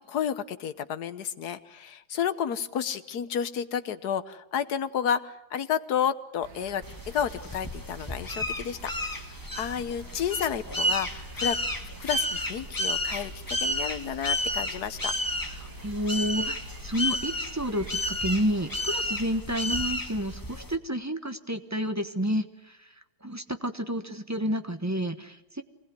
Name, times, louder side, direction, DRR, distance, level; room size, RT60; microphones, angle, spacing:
voice 1, 0.1-8.9 9.5-11.6 12.0-15.1, left 8 dB, 55° left, 12 dB, 1.5 m, -31 dB
sound 1, 6.4-19.4, right 5 dB, 80° right, 2.3 m, -47 dB
sound 2, 6.8-20.8, left 1 dB, 10° left, 1.5 m, -32 dB
voice 2, 15.6-22.9 23.2-25.6, equal, 10° right, 9 dB, 0.8 m, -30 dB
25.5 x 19.5 x 9.6 m, 0.98 s
omnidirectional pair, 2.2 m